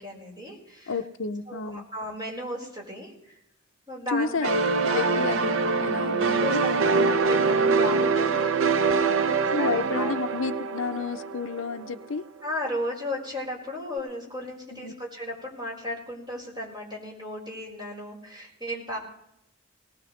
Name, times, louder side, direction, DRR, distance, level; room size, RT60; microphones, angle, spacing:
voice 1, 0.0-1.0 1.5-3.4 3.9-4.3 4.9-5.1 6.0-9.2 9.6-10.1 12.4-19.0, left 1 dB, 20° right, -3 dB, 4.5 m, -35 dB
voice 2, 0.9-1.9 4.1-6.6 8.3-8.5 9.5-12.2 14.7-15.0, left 5 dB, 65° left, 10 dB, 0.6 m, -31 dB
sound 1, 4.4-11.9, right 4 dB, 70° right, 0.7 m, -24 dB
19.0 x 18.5 x 3.2 m, 0.80 s
head